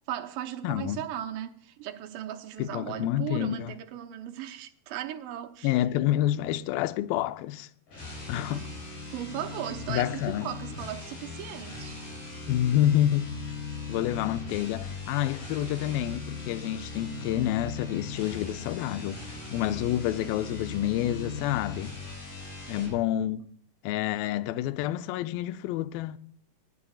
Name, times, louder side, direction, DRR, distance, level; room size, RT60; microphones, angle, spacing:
voice 1, 0.1-5.8 8.5-8.7 9.1-12.1, right 11 dB, 70° right, 2.3 m, -37 dB
voice 2, 0.6-1.0 2.6-3.7 5.6-7.7 8.3-8.7 9.9-10.5 12.5-13.3 13.9-22.0 22.7-23.4 23.8-26.2, left 13 dB, 80° left, 2.2 m, -28 dB
sound 1, 7.9-23.0, left 4 dB, 60° left, 6.2 m, -39 dB
19.5 x 12.5 x 2.4 m
omnidirectional pair, 4.5 m